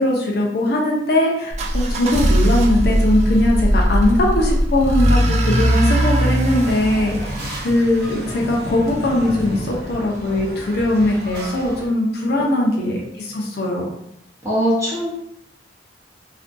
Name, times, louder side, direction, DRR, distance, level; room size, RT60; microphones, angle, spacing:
voice 1, 0.0-7.3 7.6-13.9, left 1 dB, 60° left, -2 dB, 0.5 m, -20 dB
sound 1, 1.5-8.4, right 1 dB, 40° right, 0.3 m, -19 dB
sound 2, 6.4-11.9, equal, 60° right, 0.7 m, -31 dB
voice 2, 14.4-15.1, equal, 15° right, -7 dB, 0.8 m, -21 dB
2.5 x 2.2 x 2.5 m, 0.76 s
head